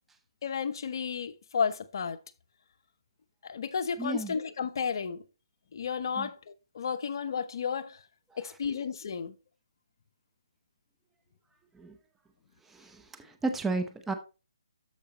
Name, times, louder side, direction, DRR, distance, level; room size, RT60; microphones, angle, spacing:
voice 1, 0.4-2.2 3.4-5.2 5.7-8.0 8.4-9.3, left 6 dB, 55° left, 0.9 m, -32 dB
voice 2, 4.0-4.3 6.2-6.3 11.8-11.9 12.7-14.1, right 3 dB, 5° right, 0.9 m, -33 dB
13.0 x 4.8 x 3.0 m
hypercardioid pair, 155°, 3 cm